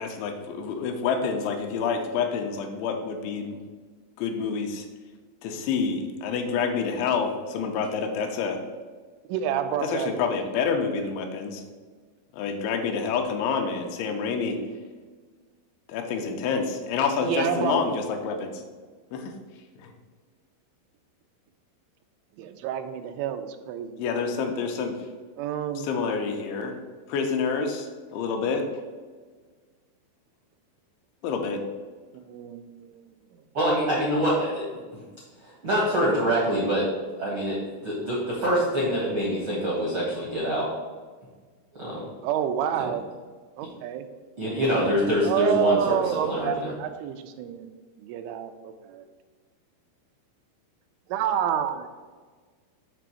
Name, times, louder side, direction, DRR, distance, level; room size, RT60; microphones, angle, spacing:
voice 1, 0.0-3.6 4.2-4.9 5.4-8.6 9.8-11.6 12.3-14.6 15.9-18.6 19.1-19.3 19.8-19.9 24.0-25.0 25.8-26.8 27.1-28.7 31.2-31.6, left 5 dB, 80° left, 3 dB, 3.1 m, -28 dB
voice 2, 9.3-10.2 17.2-18.0 22.4-24.0 25.4-25.9 32.1-33.0 42.2-43.0 43.6-44.1 45.2-47.7 48.0-49.1 51.1-51.9, right 9 dB, 85° right, 8 dB, 3.0 m, -28 dB
voice 3, 33.5-34.6 34.9-35.0 35.4-36.8 37.2-37.6 37.8-40.7 41.8-42.0 42.7-42.8 44.4-46.7, equal, 70° right, -6 dB, 1.2 m, -25 dB
7.8 x 3.4 x 6.2 m, 1.5 s
omnidirectional pair, 5.4 m